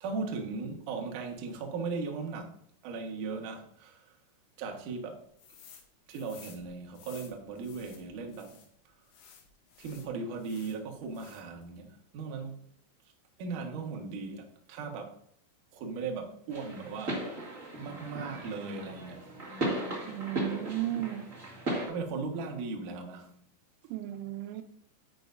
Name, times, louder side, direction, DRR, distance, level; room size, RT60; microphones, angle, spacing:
voice 1, 0.0-4.1 4.6-5.3 6.1-8.6 9.8-12.6 13.4-15.2 15.7-17.3 17.8-19.3 21.9-23.3, right 4 dB, 60° right, 2.2 m, -38 dB
sound 1, 5.4-5.8 6.1-8.7 9.1-10.8 11.1-11.6, left 7 dB, 75° left, 3.8 m, -54 dB
sound 2, 16.5-21.9, right 1 dB, 35° right, 1.2 m, -36 dB
voice 2, 20.1-21.3 23.9-24.6, right 13 dB, 85° right, 3.2 m, -34 dB
9.9 x 9.4 x 2.6 m
omnidirectional pair, 5.5 m